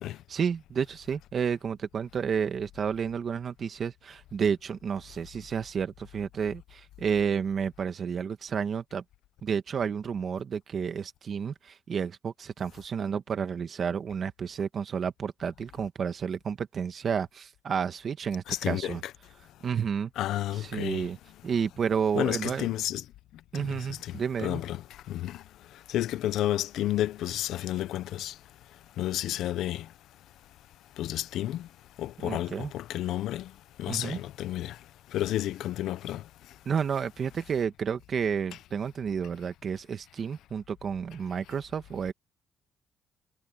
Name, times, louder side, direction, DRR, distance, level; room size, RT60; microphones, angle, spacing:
voice 1, 0.3-9.0 9.4-19.0 19.6-20.1 20.6-21.2 21.4-22.7 23.5-24.6 32.2-32.7 33.9-34.2 36.6-42.1, right 7 dB, 50° right, 1.4 m, -31 dB
voice 2, 18.5-19.0 20.2-21.1 22.2-23.0 23.5-24.1 24.4-24.8 25.1-25.4 25.9-28.3 29.0-29.9 31.0-31.7 32.0-33.5 33.8-34.8 35.1-36.2, left 13 dB, 85° left, 0.7 m, -31 dB
cardioid pair, 90°, 0 cm